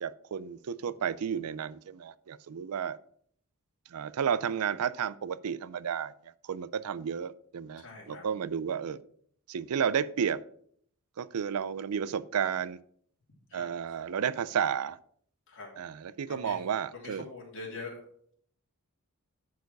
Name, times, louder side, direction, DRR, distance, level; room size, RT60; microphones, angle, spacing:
voice 1, 0.0-3.0 3.9-6.1 6.4-9.0 9.5-10.4 11.2-12.8 13.5-15.0 15.8-17.3, right 7 dB, 80° right, 16 dB, 0.4 m, -32 dB
voice 2, 7.8-8.3 13.5-13.7 15.5-15.7 16.3-16.6 16.9-18.0, left 3 dB, 60° left, -3 dB, 3.1 m, -43 dB
10.5 x 4.8 x 4.7 m, 0.62 s
head